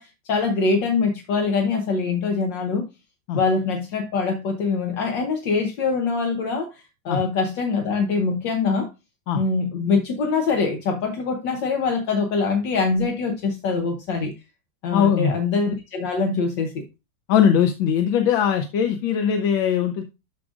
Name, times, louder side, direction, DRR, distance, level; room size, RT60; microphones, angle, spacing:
voice 1, 0.0-2.9 3.3-8.9 9.3-14.3 14.8-16.8, left 4 dB, 70° left, 1.7 m, -24 dB
voice 2, 14.9-15.3 17.3-20.0, left 8 dB, 90° left, 1.6 m, -20 dB
12.5 x 4.8 x 2.4 m
omnidirectional pair, 2.1 m